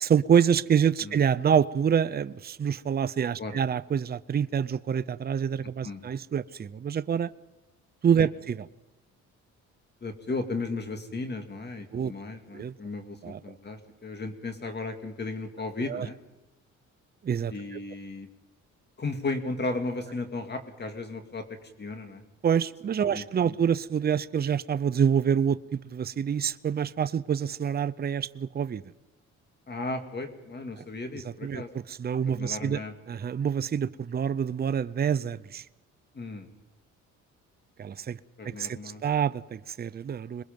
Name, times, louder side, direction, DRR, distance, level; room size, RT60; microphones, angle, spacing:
voice 1, 0.0-7.3 8.0-8.7 11.9-12.1 12.5-12.7 13.2-13.4 15.9-16.1 17.2-17.8 22.4-28.8 30.8-30.9 31.2-32.8 33.1-35.6 37.8-38.2 38.4-40.4, right 8 dB, 30° right, 0.6 m, -27 dB
voice 2, 10.0-16.2 17.5-18.3 19.0-21.5 21.8-22.2 23.0-23.6 29.7-31.7 32.3-32.9 36.1-36.5 38.4-39.0, left 3 dB, 35° left, 2.3 m, -35 dB
26.5 x 21.5 x 5.3 m
cardioid pair, 90°, 30 cm